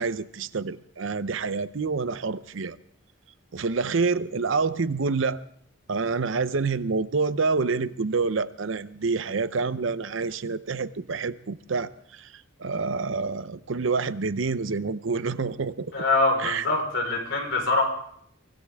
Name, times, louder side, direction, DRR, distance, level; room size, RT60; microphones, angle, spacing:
voice 1, 0.0-2.8 3.5-5.4 5.9-15.9 16.4-16.7, right 4 dB, 70° right, 0.7 m, -27 dB
voice 2, 15.9-17.8, left 2 dB, 65° left, 4.4 m, -24 dB
24.0 x 17.0 x 3.6 m
head